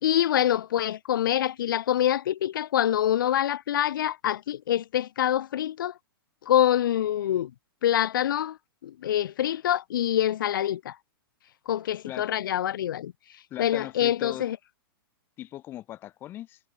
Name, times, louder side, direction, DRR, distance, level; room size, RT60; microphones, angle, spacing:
voice 1, 0.0-5.9 6.4-7.5 7.8-8.6 8.8-11.0 11.7-13.1 13.6-14.6, left 11 dB, 55° left, 2.6 m, -25 dB
voice 2, 13.5-14.5 15.4-16.6, left 13 dB, 15° left, 3.2 m, -39 dB
hypercardioid pair, 180°, 13 cm